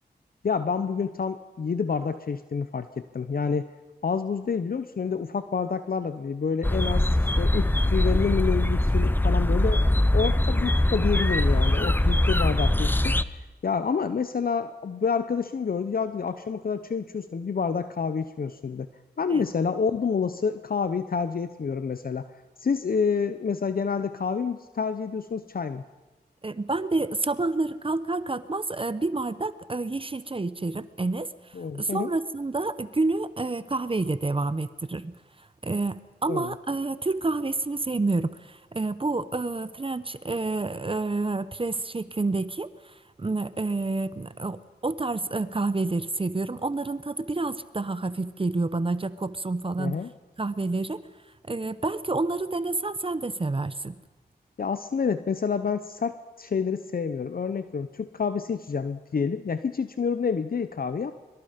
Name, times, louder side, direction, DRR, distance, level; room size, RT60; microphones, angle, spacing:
voice 1, 0.4-3.7 4.0-7.1 7.4-9.8 10.1-13.1 13.6-18.9 19.2-22.3 22.6-25.8 31.5-32.1 36.3-36.5 49.8-50.1 54.6-61.1, left 5 dB, 60° left, 11 dB, 0.8 m, -28 dB
sound 1, 6.6-13.2, left 1 dB, 10° left, 0.8 m, -22 dB
voice 2, 26.4-35.1 35.6-49.9 50.4-51.0 51.5-53.9, right 3 dB, 30° right, 14 dB, 0.9 m, -29 dB
24.0 x 23.5 x 5.2 m, 1.2 s
cardioid pair, 55°, 17 cm